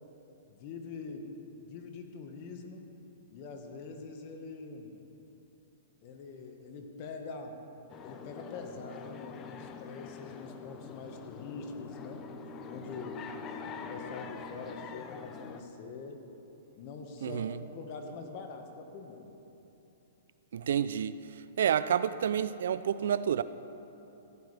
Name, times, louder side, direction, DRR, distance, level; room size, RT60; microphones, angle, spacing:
voice 1, 0.3-2.9 3.3-5.0 6.0-7.6 8.0-12.2 12.7-13.2 13.7-16.2 16.8-19.3, left 4 dB, 45° left, 4 dB, 1.4 m, -44 dB
sound 1, 7.9-15.6, left 5 dB, 25° left, 0.6 m, -45 dB
voice 2, 17.2-17.6 20.5-21.2 21.6-23.4, right 9 dB, 70° right, 15 dB, 0.4 m, -29 dB
15.5 x 10.5 x 3.4 m, 2.9 s
hypercardioid pair, 135°, 0 cm